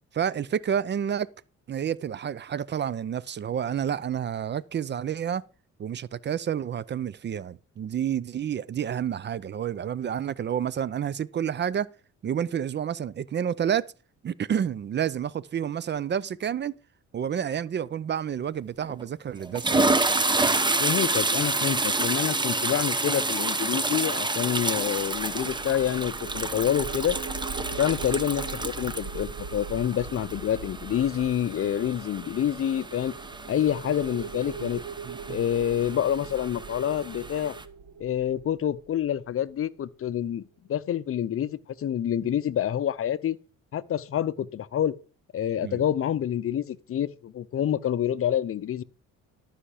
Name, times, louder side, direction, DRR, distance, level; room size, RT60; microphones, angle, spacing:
voice 1, 0.1-1.3 1.7-5.4 5.8-11.9 12.2-13.9 14.2-16.7 17.1-20.3 34.6-34.7 35.0-35.4 45.6-45.8, right 8 dB, 35° right, 0.4 m, -29 dB
sound 1, 18.8-19.0 19.4-37.6, right 2 dB, 15° right, 0.8 m, -29 dB
voice 2, 20.8-27.2 27.8-33.1 33.5-34.8 35.3-37.5 38.0-40.4 40.7-43.4 43.7-44.9 45.3-48.8, left 10 dB, 45° left, 0.6 m, -27 dB
sound 2, 24.6-39.5, right 6 dB, 70° right, 1.6 m, -41 dB
12.5 x 5.7 x 4.9 m
cardioid pair, 90°, 30 cm